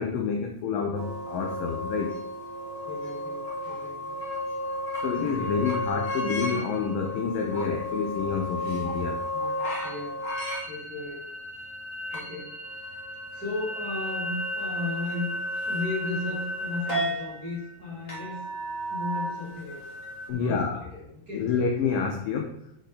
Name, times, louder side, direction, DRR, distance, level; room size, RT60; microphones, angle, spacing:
voice 1, 0.0-2.2 4.9-9.2 20.3-20.8 21.3-22.5, left 5 dB, 85° left, 2 dB, 2.0 m, -28 dB
sound 1, 0.9-20.3, equal, 45° left, 0.9 m, -33 dB
voice 2, 2.8-4.2 4.6-4.7 5.2-5.5 9.3-10.2 10.6-11.3 12.1-12.6 13.3-15.4 15.6-18.4 18.9-19.8 20.3-21.5, left 3 dB, 25° right, -6 dB, 2.3 m, -35 dB
8.1 x 6.3 x 5.0 m, 0.77 s
omnidirectional pair, 5.2 m